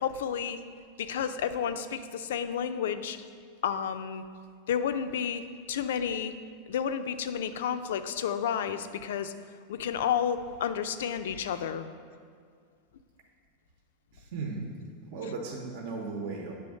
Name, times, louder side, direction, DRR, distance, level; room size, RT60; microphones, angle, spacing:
voice 1, 0.0-0.6 1.0-3.2 3.6-4.2 4.7-5.4 5.7-6.3 6.7-9.3 9.7-11.8, left 8 dB, 80° left, 10 dB, 0.4 m, -31 dB
voice 2, 14.1-14.7 15.1-16.5, right 4 dB, 50° right, 0 dB, 0.9 m, -36 dB
8.3 x 3.5 x 6.3 m, 2.1 s
supercardioid pair, 170°, 0 cm